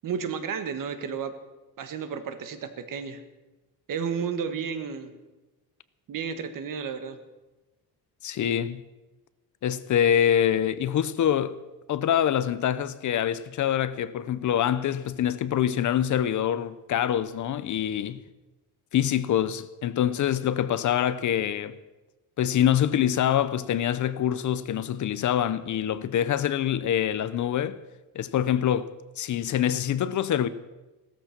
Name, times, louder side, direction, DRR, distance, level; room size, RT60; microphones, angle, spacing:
voice 1, 0.0-1.3 1.8-3.2 3.9-5.1 6.1-7.2, right 6 dB, 55° right, 1.5 m, -32 dB
voice 2, 8.2-8.8 9.6-11.6 11.9-18.2 18.9-21.8 22.4-27.8 28.2-30.5, left 10 dB, 50° left, 0.6 m, -25 dB
16.5 x 13.5 x 5.9 m
cardioid pair, 175°, 38 cm